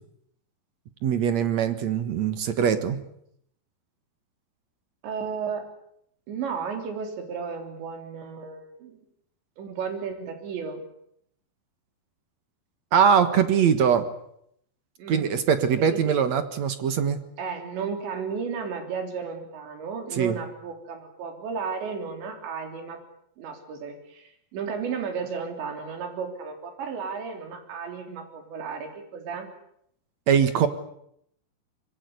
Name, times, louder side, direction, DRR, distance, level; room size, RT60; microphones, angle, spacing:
voice 1, 1.0-3.0 12.9-14.1 15.1-17.2 20.1-20.4 30.3-30.7, right 7 dB, 60° right, 10 dB, 2.0 m, -22 dB
voice 2, 5.0-5.7 6.3-9.0 9.6-10.8 15.0-15.4 15.8-16.2 17.4-23.0 23.4-29.5, right 6 dB, 80° right, 5 dB, 5.7 m, -34 dB
25.0 x 22.5 x 8.1 m, 0.72 s
omnidirectional pair, 5.0 m